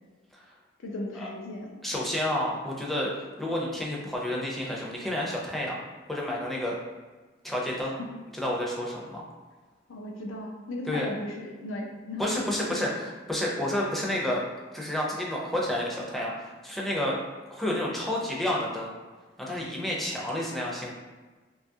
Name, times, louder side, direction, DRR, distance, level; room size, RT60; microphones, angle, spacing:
voice 1, 0.8-1.8 7.8-8.1 9.9-12.3 12.7-13.0, left 1 dB, 90° left, 0 dB, 0.5 m, -37 dB
voice 2, 1.8-3.1 3.4-5.7 6.1-6.8 7.4-7.9 8.4-9.3 10.9-11.1 12.2-14.4 14.7-17.2 17.5-18.9 19.4-20.9, left 1 dB, ahead, -4 dB, 0.4 m, -30 dB
2.7 x 2.3 x 2.6 m, 1.3 s
head